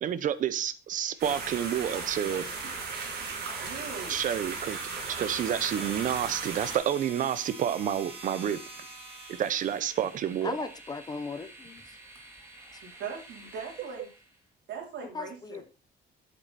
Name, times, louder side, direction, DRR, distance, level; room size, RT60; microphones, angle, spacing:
voice 1, 0.0-2.4 4.1-4.8 5.1-8.6 9.3-10.7, right 9 dB, 45° right, 0.8 m, -29 dB
Train, 0.9-14.4, right 2 dB, 15° right, 2.2 m, -50 dB
sound 1, 1.2-6.8, right 4 dB, 60° right, 3.2 m, -36 dB
voice 2, 3.6-4.2 12.8-14.1 14.7-15.6, right 6 dB, 80° right, 4.1 m, -40 dB
sound 2, 4.0-10.2, right 3 dB, 30° right, 3.3 m, -46 dB
voice 3, 10.4-12.0 12.7-12.8 15.1-15.6, left 4 dB, 20° left, 0.8 m, -37 dB
8.2 x 8.1 x 4.2 m
cardioid pair, 170°, 18 cm